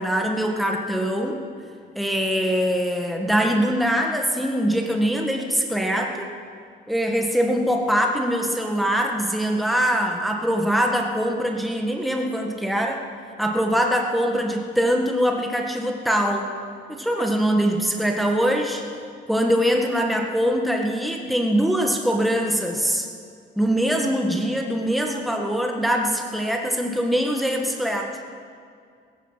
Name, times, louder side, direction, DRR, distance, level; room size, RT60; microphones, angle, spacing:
voice 1, 0.0-1.4 2.0-6.3 6.9-13.0 13.4-16.5 16.9-18.8 19.3-23.1 23.6-28.2, equal, ahead, 2 dB, 1.7 m, -23 dB
16.0 x 15.0 x 5.9 m, 2.2 s
cardioid pair, 90°, 20 cm